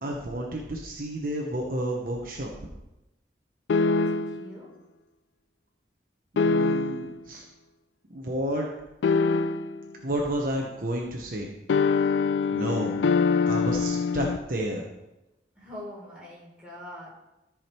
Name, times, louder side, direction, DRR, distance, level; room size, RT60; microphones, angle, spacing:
voice 1, 0.0-2.5 6.4-7.4 8.1-8.7 10.0-11.5 12.5-12.9 13.5-14.8, right 1 dB, 50° right, -1 dB, 1.1 m, -31 dB
sound 1, 3.7-4.5 6.4-7.2 9.0-9.9 11.7-14.4, left 4 dB, 85° left, 0.4 m, -24 dB
voice 2, 4.0-4.7 15.6-17.1, left 1 dB, 5° right, -6 dB, 3.5 m, -43 dB
14.0 x 5.0 x 4.5 m, 0.95 s
head